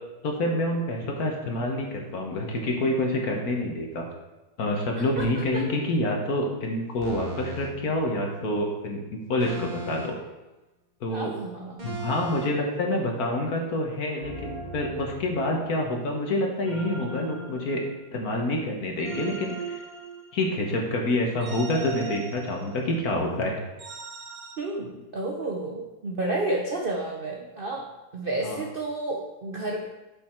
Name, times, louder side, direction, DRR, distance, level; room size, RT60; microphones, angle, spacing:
voice 1, 0.2-4.1 4.6-9.0 9.3-10.1 11.0-11.3 11.8-17.8 18.1-19.8 20.3-23.6 28.4-28.6, left 1 dB, 55° left, 1 dB, 1.5 m, -27 dB
voice 2, 5.0-5.6 11.1-11.9 24.6-27.8 28.1-29.9, right 2 dB, 70° right, 0 dB, 0.5 m, -31 dB
sound 1, 5.2-5.4 7.0-7.7 9.4-10.3 11.8-12.5 14.2-15.7 16.6-18.2 19.0-20.6 21.4-22.9 23.8-24.6, right 2 dB, 30° right, 1.1 m, -38 dB
6.8 x 5.5 x 4.3 m, 1.1 s
omnidirectional pair, 2.0 m